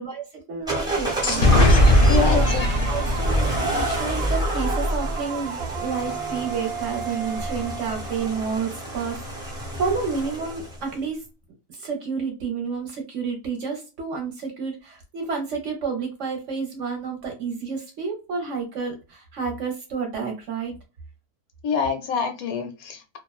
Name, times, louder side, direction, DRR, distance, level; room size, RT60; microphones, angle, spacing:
voice 1, 0.0-1.5 2.0-2.5 2.8-11.2 11.7-20.7, right 5 dB, 60° right, 3 dB, 0.9 m, -30 dB
sound 1, 0.7-10.9, equal, 5° right, 0.5 m, -28 dB
sound 2, 0.9-8.5, right 8 dB, 90° right, 0.5 m, -35 dB
sound 3, 1.2-4.9, left 1 dB, 50° left, 0.6 m, -20 dB
voice 2, 2.1-2.6 21.6-23.2, left 5 dB, 75° left, 5 dB, 1.0 m, -26 dB
2.5 x 2.1 x 2.3 m, 0.30 s
omnidirectional pair, 1.6 m